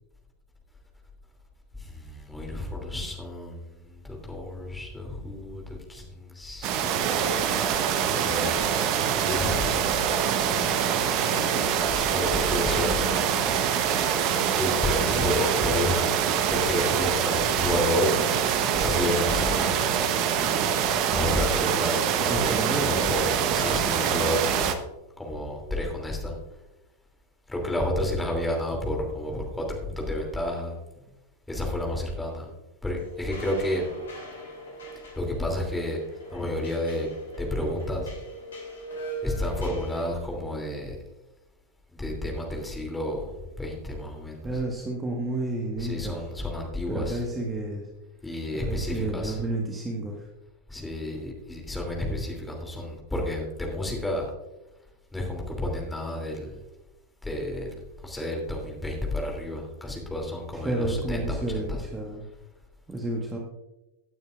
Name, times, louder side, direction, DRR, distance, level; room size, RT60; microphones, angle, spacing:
voice 1, 1.7-6.8 7.6-7.8 8.1-8.6 9.2-10.1 11.8-13.2 14.6-16.2 16.5-18.2 18.7-19.9 21.1-24.6 25.2-26.3 27.5-30.8 31.5-32.5 32.8-33.9 35.1-36.0 36.3-37.1 37.4-38.1 39.2-41.0 41.9-44.6 45.8-47.2 48.2-49.4 50.7-54.3 55.1-56.6 57.2-57.7 58.0-61.9, left 1 dB, 5° left, 0 dB, 3.0 m, -31 dB
sound 1, 6.6-24.7, right 8 dB, 40° right, 1.0 m, -25 dB
voice 2, 11.2-11.8 15.0-15.3 22.3-23.0 44.4-46.3 46.9-47.9 48.5-50.3 60.5-62.2 62.9-63.4, right 2 dB, 15° right, -1 dB, 1.6 m, -31 dB
sound 2, 33.0-40.1, right 1 dB, 65° left, 3.4 m, -41 dB
17.0 x 9.1 x 2.5 m, 0.99 s
figure-of-eight pair, 90°, 0 cm